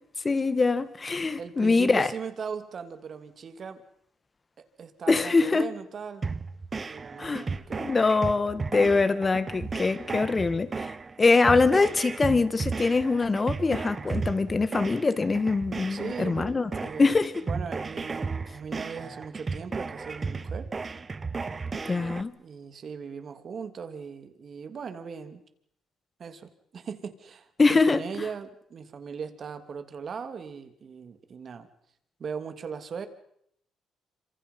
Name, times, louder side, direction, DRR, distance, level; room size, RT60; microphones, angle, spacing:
voice 1, 0.2-2.1 5.1-5.7 7.2-7.5 7.8-16.7 17.0-17.3 21.9-22.3 27.6-28.0, left 3 dB, 30° left, 2.0 m, -23 dB
voice 2, 1.4-3.8 4.6-6.2 6.9-7.9 15.9-17.2 17.5-20.7 22.4-25.4 26.2-31.7 32.2-33.1, right 6 dB, 50° right, 3.0 m, -39 dB
sound 1, 6.2-22.2, right 4 dB, 30° right, 1.2 m, -34 dB
27.5 x 26.0 x 5.6 m
cardioid pair, 85°, 0 cm